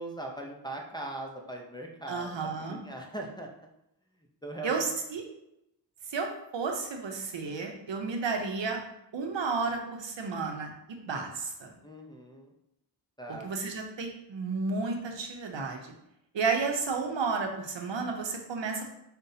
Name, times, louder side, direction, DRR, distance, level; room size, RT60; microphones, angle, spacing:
voice 1, 0.0-3.5 4.2-4.9 11.8-12.5 13.2-13.6, right 1 dB, 10° left, 1 dB, 0.5 m, -40 dB
voice 2, 2.1-2.8 4.6-4.9 5.1-5.2 6.1-6.3 6.5-8.8 9.1-11.8 13.3-15.9 16.3-18.9, right 4 dB, 90° right, 3 dB, 0.7 m, -32 dB
5.4 x 2.2 x 2.7 m, 0.83 s
wide cardioid pair, 75°, 43 cm